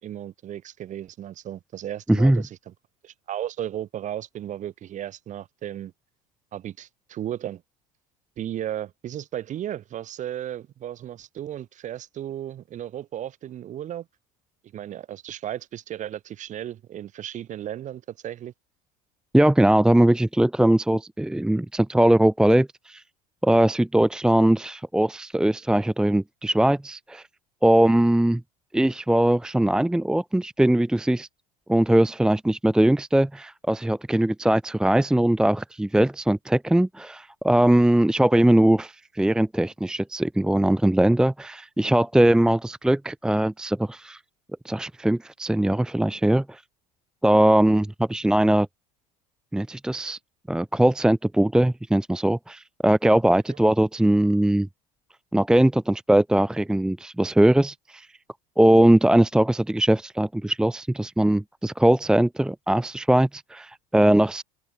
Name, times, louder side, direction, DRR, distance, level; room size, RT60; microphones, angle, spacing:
voice 1, 0.0-2.7 3.0-5.9 6.5-7.6 8.4-14.1 14.7-18.5, right 11 dB, 40° right, 5.0 m, -35 dB
voice 2, 2.1-2.4 19.3-23.0 23.4-27.2 27.6-28.4 28.7-31.3 31.7-44.2 44.6-46.6 47.2-48.7 49.5-50.2 50.5-54.7 55.3-58.1 58.6-64.4, right 1 dB, 5° right, 1.0 m, -20 dB
supercardioid pair, 120°, 19 cm